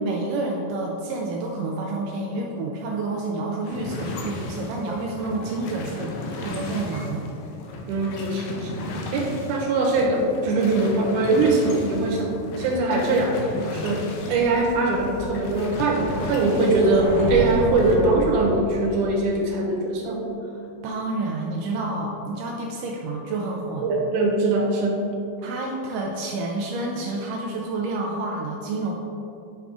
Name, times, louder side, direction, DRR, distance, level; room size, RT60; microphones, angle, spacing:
voice 1, 0.0-6.1 6.4-7.3 20.4-23.9 25.4-28.9, right 2 dB, 90° right, -1 dB, 1.8 m, -29 dB
sound 1, 3.6-18.0, left 2 dB, 80° left, 2.9 m, -35 dB
voice 2, 7.9-12.3 12.6-20.3 23.8-25.0, right 2 dB, 65° right, -2 dB, 2.2 m, -22 dB
sound 2, 14.5-19.3, left 1 dB, 60° left, 2.4 m, -31 dB
9.5 x 6.0 x 3.5 m, 2.7 s
omnidirectional pair, 4.6 m